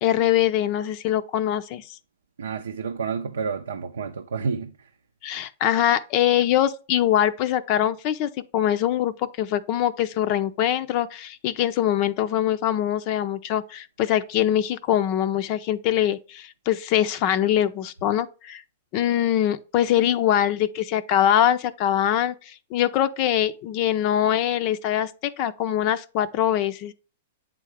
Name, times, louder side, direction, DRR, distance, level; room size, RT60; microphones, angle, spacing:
voice 1, 0.0-1.8 5.2-18.6 18.9-26.9, left 11 dB, 45° left, 0.5 m, -23 dB
voice 2, 2.4-4.7, right 5 dB, 90° right, 0.5 m, -29 dB
8.3 x 3.7 x 3.2 m
hypercardioid pair, 130°, 0 cm